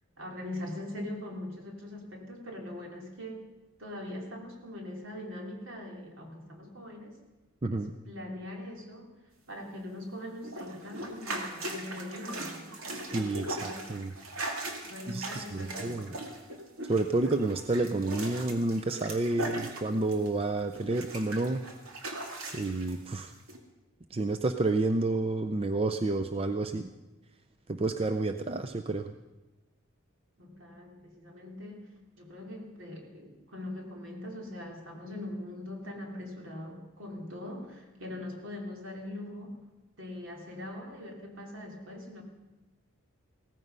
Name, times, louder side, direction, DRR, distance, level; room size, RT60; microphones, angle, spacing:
voice 1, 0.2-3.4 3.8-7.2 7.7-9.1 9.5-13.8 14.9-16.2 30.4-31.9 32.2-39.5 40.0-42.2, left 1 dB, 65° right, 1 dB, 3.0 m, -42 dB
sound 1, 10.4-20.4 20.7-22.9 23.5-23.6, right 1 dB, 85° right, 2.2 m, -39 dB
voice 2, 13.1-14.1 15.1-16.1 16.9-21.6 22.5-23.3 24.1-26.9 27.7-29.1, right 2 dB, 25° right, 7 dB, 0.5 m, -30 dB
17.0 x 14.5 x 5.5 m, 1.1 s
head